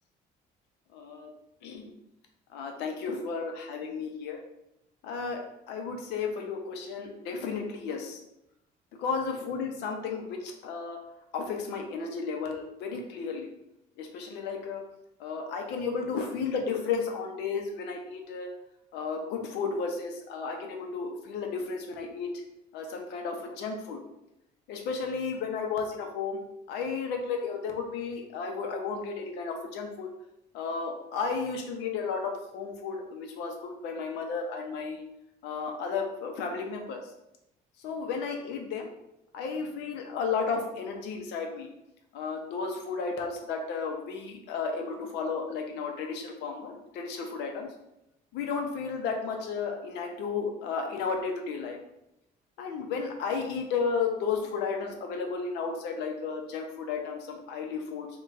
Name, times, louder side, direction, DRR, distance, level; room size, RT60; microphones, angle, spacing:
voice 1, 0.9-1.3 1.6-1.9 2.5-4.4 5.0-8.2 9.0-11.0 11.3-13.5 14.0-14.8 15.2-18.5 18.9-22.3 22.7-24.0 24.7-26.4 26.7-30.1 30.5-35.0 35.4-37.0 37.8-38.9 39.3-41.7 42.1-47.7 48.3-51.8 52.6-58.1, left 5 dB, 90° left, 3 dB, 0.6 m, -33 dB
2.4 x 2.3 x 3.9 m, 0.87 s
cardioid pair, 110°, 17 cm